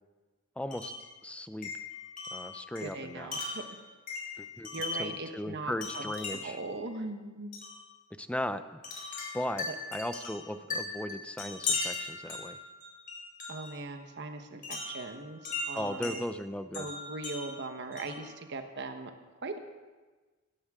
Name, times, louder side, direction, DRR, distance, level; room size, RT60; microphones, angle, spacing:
voice 1, 0.6-0.9 1.2-1.7 2.3-3.3 4.4-4.7 5.0-6.6 8.2-8.8 9.3-9.6 9.9-12.6 15.7-16.9, left 1 dB, 5° left, 11 dB, 0.6 m, -37 dB
Wind chime, 0.7-1.1 1.6-5.2 5.8-6.6 7.5-7.8 8.8-13.8 14.6-16.2 16.7-18.3, left 3 dB, 45° left, 4.3 m, -38 dB
voice 2, 2.8-3.8 4.7-7.5 9.7-9.8 13.5-16.2 16.7-19.6, right 2 dB, 60° right, 6 dB, 1.2 m, -40 dB
17.0 x 17.0 x 3.7 m, 1.3 s
head